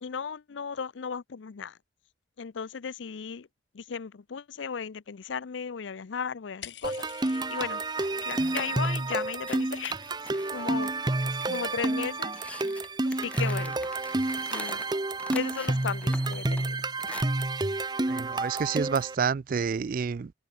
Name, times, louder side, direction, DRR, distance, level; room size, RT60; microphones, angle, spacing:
voice 1, 0.0-1.8 2.4-3.5 3.7-7.8 8.2-9.9 10.5-10.9 11.3-12.4 13.0-13.8 14.5-14.8 15.3-16.8, left 6 dB, 85° left, 0.5 m, -36 dB
sound 1, 6.6-8.2 8.5-9.0 9.3-10.4, left 10 dB, 70° left, 1.2 m, -47 dB
sound 2, 6.8-19.1, right 2 dB, 25° right, 0.8 m, -29 dB
sound 3, 8.0-17.2, left 1 dB, 5° left, 1.2 m, -45 dB
voice 2, 18.0-20.3, right 6 dB, 50° right, 0.4 m, -29 dB
head